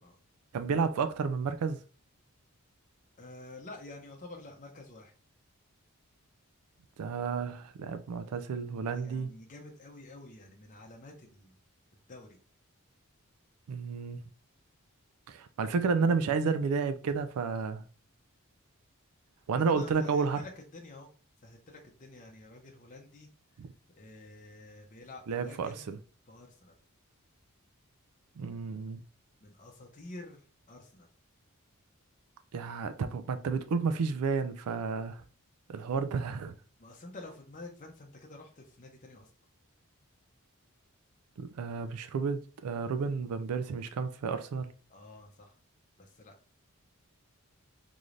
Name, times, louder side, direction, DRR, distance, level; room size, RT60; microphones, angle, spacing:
voice 1, 0.5-1.8 7.0-9.3 13.7-14.2 15.3-17.8 19.5-20.4 23.6-23.7 25.3-26.0 28.4-29.0 32.5-35.2 35.7-36.5 41.4-44.7, right 5 dB, 80° right, 0.4 m, -31 dB
voice 2, 3.2-5.1 8.9-11.6 12.1-12.4 19.7-21.1 21.4-23.3 24.0-25.9 26.3-26.7 29.4-31.1 36.8-39.3 44.9-45.6 46.0-46.3, left 2 dB, 35° left, 0.6 m, -49 dB
3.8 x 3.1 x 2.5 m
head